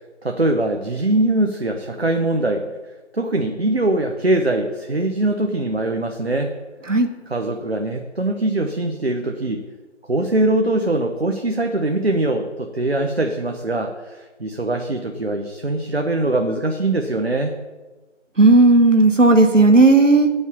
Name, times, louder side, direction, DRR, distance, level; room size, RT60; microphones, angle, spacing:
voice 1, 0.2-2.6 3.1-6.5 7.3-9.6 10.1-17.6, right 2 dB, 55° right, 4 dB, 0.9 m, -22 dB
voice 2, 18.4-20.3, right 2 dB, 85° right, 6 dB, 1.1 m, -13 dB
8.2 x 5.4 x 7.2 m, 1.2 s
figure-of-eight pair, 170°, 37 cm